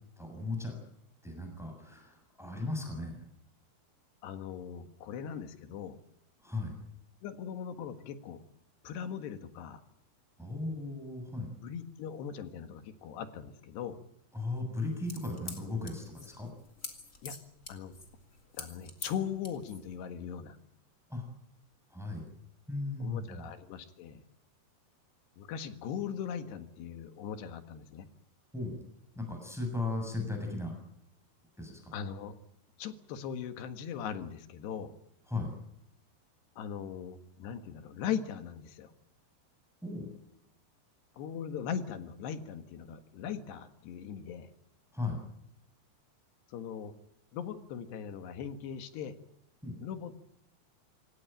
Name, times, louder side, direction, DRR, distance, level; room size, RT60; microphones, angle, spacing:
voice 1, 0.2-0.8 1.2-3.2 6.4-6.7 10.4-11.5 14.3-16.5 21.1-21.2 21.9-22.2 22.7-23.5 28.5-28.9 29.1-30.7 31.6-31.9 35.3-35.5 39.8-40.1 44.9-45.2 49.6-49.8, left 2 dB, ahead, 3 dB, 6.6 m, -36 dB
voice 2, 4.2-6.0 7.2-8.4 8.8-9.8 11.6-14.0 17.2-17.4 17.7-17.9 18.5-20.6 23.0-24.2 25.4-28.1 31.9-32.4 32.8-34.9 36.6-38.9 41.2-44.5 46.5-46.9 47.3-49.1 49.8-50.2, left 8 dB, 70° left, 9 dB, 3.6 m, -39 dB
sound 1, 14.8-19.9, left 3 dB, 20° left, 2.3 m, -46 dB
26.5 x 17.5 x 9.0 m, 0.80 s
omnidirectional pair, 5.1 m